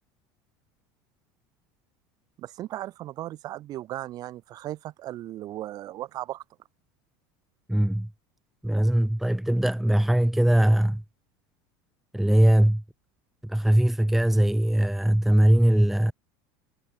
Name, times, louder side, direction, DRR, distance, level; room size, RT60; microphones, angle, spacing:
voice 1, 2.4-6.4, right 14 dB, 40° right, 4.5 m, -36 dB
voice 2, 7.7-8.1 8.6-11.0 12.1-12.8 13.4-16.1, right 1 dB, ahead, 2.1 m, -21 dB
cardioid pair, 155°, 10 cm